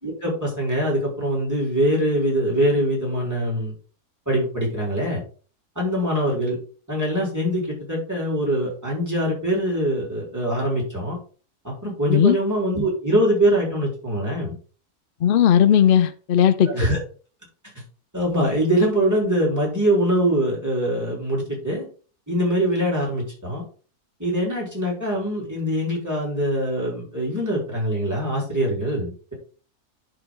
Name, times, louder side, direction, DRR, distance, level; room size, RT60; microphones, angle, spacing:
voice 1, 0.0-3.7 4.3-5.2 5.8-6.6 6.9-11.2 11.6-14.5 16.6-17.0 18.1-21.9 22.3-23.6 24.2-29.3, equal, 10° right, -4 dB, 4.4 m, -23 dB
voice 2, 15.2-16.9, left 9 dB, 70° left, 12 dB, 0.5 m, -17 dB
11.0 x 5.0 x 3.9 m, 0.38 s
omnidirectional pair, 1.7 m